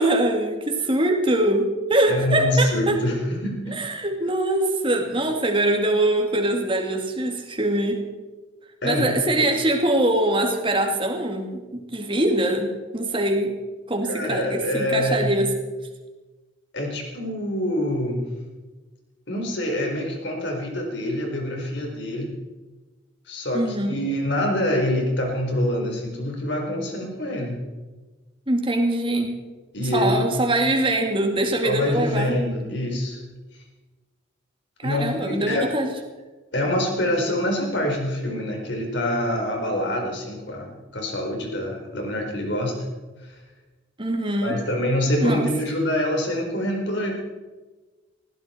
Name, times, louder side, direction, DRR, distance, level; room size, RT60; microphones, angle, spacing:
voice 1, 0.0-3.0 3.7-8.0 8.8-13.5 13.9-15.5 23.5-24.0 28.5-29.3 29.9-32.3 34.8-35.9 44.0-44.6 45.2-45.5, right 1 dB, 25° right, 3 dB, 2.4 m, -23 dB
voice 2, 2.1-3.8 8.8-9.5 14.1-15.4 16.7-18.3 19.3-22.3 23.3-27.6 29.7-30.5 31.6-33.2 34.8-35.7 36.5-42.8 43.2-43.4 44.4-47.2, left 1 dB, 65° left, 1 dB, 4.4 m, -25 dB
20.0 x 15.5 x 4.5 m, 1.2 s
head